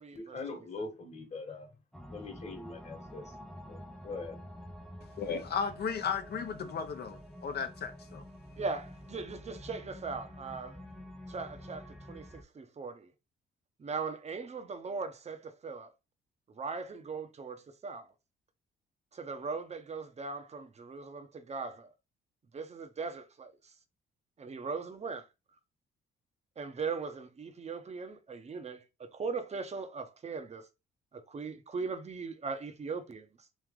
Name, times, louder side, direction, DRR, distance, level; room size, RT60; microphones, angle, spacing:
voice 1, 0.1-1.8 2.1-3.4 3.7-4.4, left 3 dB, 35° left, 1.4 m, -42 dB
sound 1, 1.9-12.4, equal, ahead, 0.6 m, -48 dB
voice 2, 5.2-8.2, left 6 dB, 55° left, 0.8 m, -35 dB
voice 3, 8.6-10.8 11.3-13.1 13.8-15.9 16.5-18.1 19.1-21.9 22.5-23.7 24.4-25.3 26.6-30.7 31.1-33.3, right 4 dB, 35° right, 0.8 m, -39 dB
3.2 x 2.9 x 3.6 m
cardioid pair, 90°, 20 cm